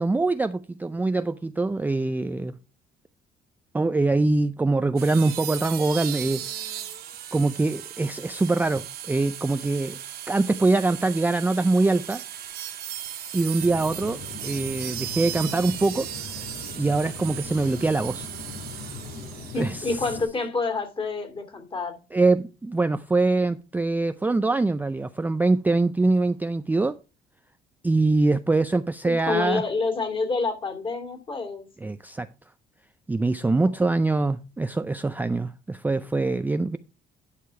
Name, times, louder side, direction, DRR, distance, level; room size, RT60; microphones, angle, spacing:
voice 1, 0.0-2.6 3.7-6.8 7.3-10.0 10.3-12.2 13.3-14.2 14.4-16.4 16.8-18.3 19.6-20.0 22.1-27.0 27.8-29.6 31.8-32.3 33.1-36.8, right 3 dB, 10° right, 0.4 m, -24 dB
sound 1, 5.0-20.1, right 11 dB, 65° right, 1.9 m, -37 dB
sound 2, 13.6-20.2, left 4 dB, 75° left, 2.8 m, -40 dB
voice 2, 19.5-22.0 29.0-31.6, left 4 dB, 30° left, 2.7 m, -28 dB
11.5 x 5.1 x 4.7 m
cardioid pair, 110°, 17 cm